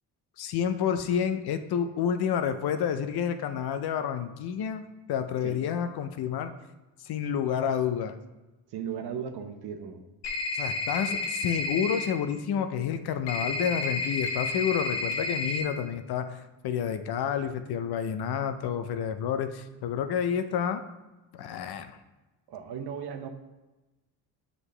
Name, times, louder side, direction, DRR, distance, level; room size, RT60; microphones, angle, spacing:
voice 1, 0.4-4.8 5.1-6.5 7.0-8.2 10.5-20.8 21.3-21.9, left 8 dB, 65° left, 9 dB, 0.7 m, -29 dB
voice 2, 8.7-10.0 22.5-23.3, right 7 dB, 70° right, 7 dB, 0.9 m, -36 dB
sound 1, 10.2-12.0 13.3-15.6, left 3 dB, 85° left, 1.2 m, -31 dB
7.9 x 5.0 x 3.3 m, 1.1 s
supercardioid pair, 70°, 41 cm